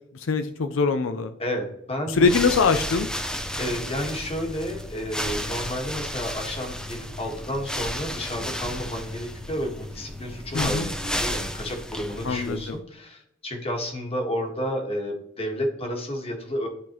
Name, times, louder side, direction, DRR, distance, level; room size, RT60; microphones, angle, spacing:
voice 1, 0.1-1.3 2.1-3.1 10.5-10.9 12.2-12.8, left 4 dB, 85° left, 9 dB, 0.5 m, -23 dB
voice 2, 1.4-2.3 3.6-16.7, equal, 30° left, 2 dB, 1.5 m, -31 dB
sound 1, 2.1-12.8, equal, 5° left, 0.6 m, -33 dB
11.5 x 3.9 x 3.0 m, 0.75 s
head